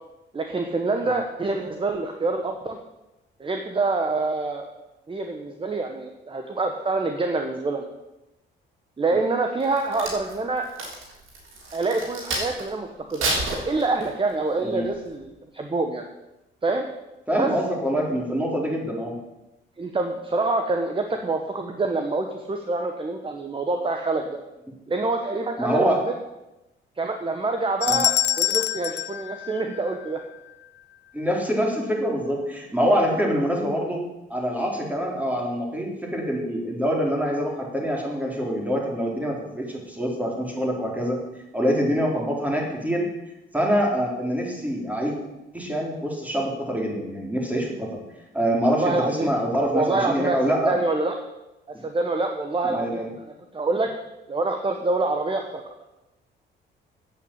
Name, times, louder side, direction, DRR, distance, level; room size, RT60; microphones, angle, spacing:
voice 1, 0.3-2.8 3.4-4.7 5.1-7.9 9.0-10.6 11.7-13.3 13.7-16.0 16.6-16.8 17.3-17.5 19.8-24.4 24.9-26.1 27.0-30.2 42.1-42.3 48.7-49.3 49.7-50.4 50.6-51.1 51.7-53.9 54.3-55.6, right 3 dB, 25° right, 4 dB, 1.3 m, -26 dB
Crack, 9.6-12.7 13.1-14.3 14.8-15.1, right 2 dB, 85° right, 3.8 m, -30 dB
voice 2, 17.3-19.2 25.6-26.0 27.9-28.0 31.1-34.0 34.3-41.2 41.5-43.1 43.5-45.2 45.5-47.9 48.3-50.7 52.6-53.1, equal, 5° right, -1 dB, 4.2 m, -25 dB
sound 1, 27.8-30.2, left 13 dB, 65° left, 0.6 m, -25 dB
9.0 x 8.1 x 8.8 m, 0.96 s
cardioid pair, 90°, 20 cm